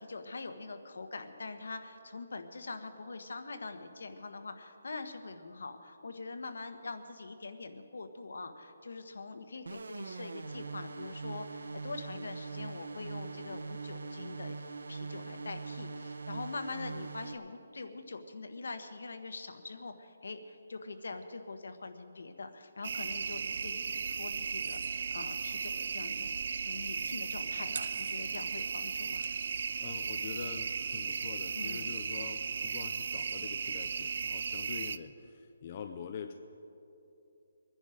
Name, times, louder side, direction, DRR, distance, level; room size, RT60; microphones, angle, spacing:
voice 1, 0.0-14.6 14.9-29.3 31.5-31.9, left 3 dB, 65° left, 8 dB, 1.3 m, -44 dB
sound 1, 9.7-17.3, right 4 dB, 70° right, 0.7 m, -42 dB
sound 2, 22.8-35.0, right 5 dB, 40° right, 0.4 m, -36 dB
voice 2, 29.8-36.3, left 7 dB, 25° left, 6 dB, 0.5 m, -45 dB
23.5 x 10.0 x 5.1 m, 2.8 s
hypercardioid pair, 180°, 0 cm